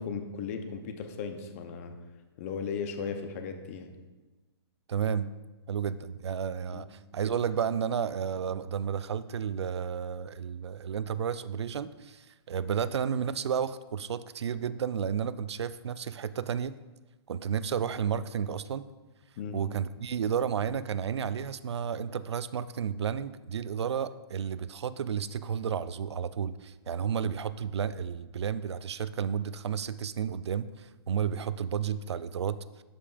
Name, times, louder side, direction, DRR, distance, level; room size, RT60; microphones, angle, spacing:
voice 1, 0.0-1.9 2.4-4.0 6.7-6.8 19.4-19.6, left 6 dB, 35° left, 6 dB, 0.7 m, -36 dB
voice 2, 4.9-5.3 5.7-16.8 17.3-18.8 19.5-32.8, right 7 dB, 85° right, 15 dB, 0.4 m, -32 dB
12.0 x 5.1 x 2.5 m, 1.2 s
hypercardioid pair, 155°, 14 cm